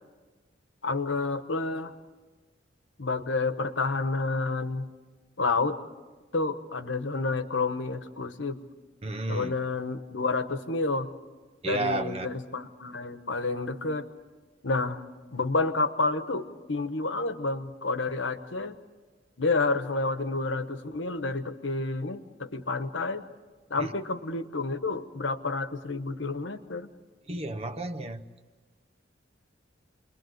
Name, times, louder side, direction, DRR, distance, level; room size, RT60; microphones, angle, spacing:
voice 1, 0.8-1.9 3.0-4.9 5.4-5.8 6.3-8.6 9.3-11.1 11.6-14.1 14.6-15.0 15.3-18.7 19.4-23.2 23.7-26.9, left 3 dB, 75° left, 9 dB, 1.3 m, -29 dB
voice 2, 9.0-9.5 11.6-12.3 23.8-23.9 27.3-28.2, right 2 dB, 35° right, 10 dB, 1.0 m, -32 dB
28.5 x 22.0 x 8.0 m, 1.3 s
head